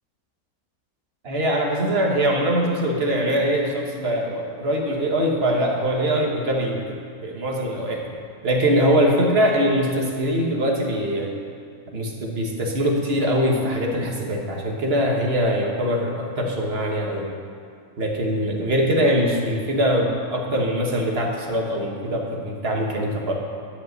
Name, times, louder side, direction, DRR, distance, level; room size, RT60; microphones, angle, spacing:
voice 1, 1.2-6.8 7.2-8.0 8.4-11.3 11.9-17.3 18.0-23.3, equal, 45° right, 0 dB, 1.4 m, -22 dB
10.5 x 5.4 x 7.8 m, 2.3 s
omnidirectional pair, 1.6 m